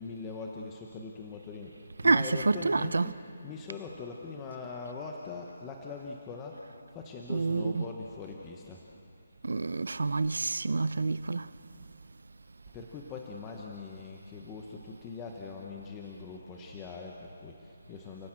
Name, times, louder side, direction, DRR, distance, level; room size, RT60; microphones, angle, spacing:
voice 1, 0.0-6.6 6.9-8.8 12.7-18.3, left 4 dB, 10° left, 0.9 m, -42 dB
voice 2, 2.0-3.1 7.3-7.8 9.4-11.5, right 3 dB, 85° right, 0.7 m, -28 dB
29.5 x 17.0 x 8.8 m
hypercardioid pair, 180°, 0 cm